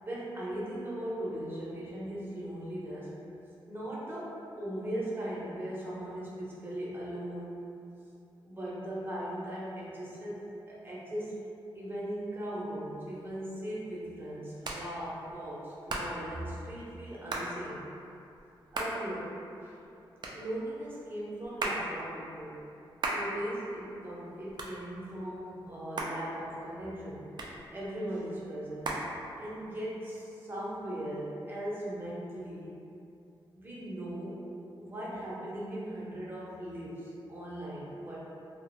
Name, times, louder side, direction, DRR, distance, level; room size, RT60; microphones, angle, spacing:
voice 1, 0.0-3.1 3.7-7.6 8.5-11.3 11.7-17.8 18.7-19.9 20.3-22.6 23.1-27.2 27.7-29.0 29.4-32.7 33.5-34.4 34.8-38.2, right 1 dB, 25° right, -7 dB, 0.7 m, -39 dB
Hands, 13.1-29.8, right 2 dB, 55° right, 0.3 m, -40 dB
2.3 x 2.0 x 2.9 m, 2.7 s
cardioid pair, 70°, 9 cm